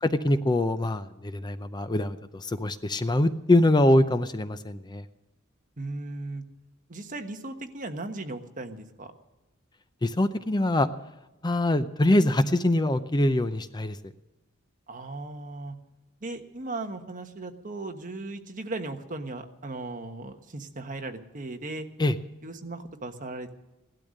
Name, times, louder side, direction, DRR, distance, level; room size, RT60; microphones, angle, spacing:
voice 1, 0.0-5.0 10.0-10.9 11.4-14.1 22.0-22.2, left 1 dB, 20° left, 11 dB, 0.5 m, -24 dB
voice 2, 5.8-6.4 6.9-9.1 14.9-15.7 16.2-21.9 22.4-23.5, right 2 dB, 40° right, 6 dB, 1.3 m, -37 dB
17.0 x 12.0 x 6.5 m, 1.0 s
head